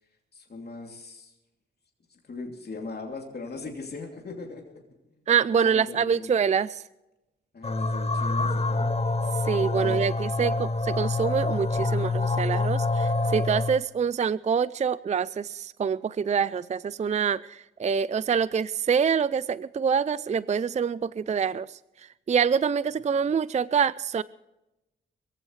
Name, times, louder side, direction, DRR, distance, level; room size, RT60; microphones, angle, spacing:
voice 1, 0.3-1.3 2.1-4.8 5.5-6.3 7.5-8.9 9.8-10.1 10.4-10.7, left 3 dB, 50° left, 1 dB, 2.9 m, -39 dB
voice 2, 5.3-6.8 9.4-21.8 22.3-24.2, right 7 dB, 35° right, 18 dB, 0.4 m, -26 dB
sound 1, 7.6-13.8, left 3 dB, 30° left, 1.1 m, -26 dB
22.5 x 15.5 x 3.2 m, 0.95 s
cardioid pair, 85°, 21 cm